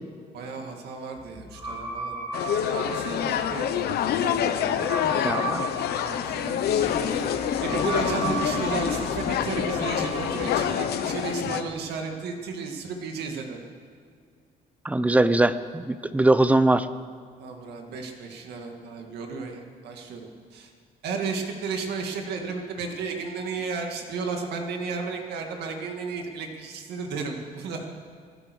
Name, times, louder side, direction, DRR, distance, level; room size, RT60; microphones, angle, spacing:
voice 1, 0.3-2.2 2.7-3.8 6.0-6.8 7.6-13.6 17.4-20.7 21.0-28.0, right 4 dB, 85° right, 3 dB, 2.2 m, -33 dB
sound 1, 1.2-10.6, right 3 dB, 30° right, 3.8 m, -36 dB
sound 2, 2.3-11.6, left 9 dB, 75° left, 1.0 m, -27 dB
voice 2, 5.0-5.6 14.8-16.9, right 2 dB, 10° right, 13 dB, 0.7 m, -22 dB
sound 3, 6.7-12.1, left 3 dB, 40° left, 2.7 m, -35 dB
24.0 x 9.0 x 6.4 m, 2.1 s
cardioid pair, 95°, 17 cm